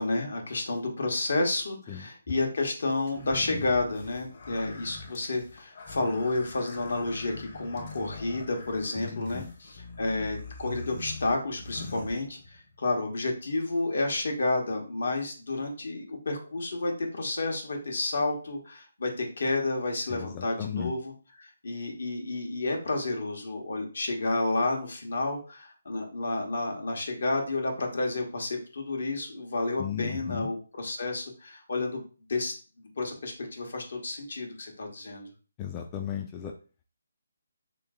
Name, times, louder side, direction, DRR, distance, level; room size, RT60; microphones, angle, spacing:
voice 1, 0.0-21.1 21.4-32.0 32.3-32.5 33.0-35.3, left 2 dB, 70° left, 2 dB, 1.2 m, -30 dB
sound 1, 3.1-12.8, left 3 dB, 45° left, 1.1 m, -43 dB
voice 2, 8.9-9.5 20.1-20.9 29.8-30.5 35.6-36.5, left 9 dB, 20° left, 3 dB, 0.4 m, -36 dB
3.2 x 3.0 x 3.7 m, 0.36 s
hypercardioid pair, 155°, 0 cm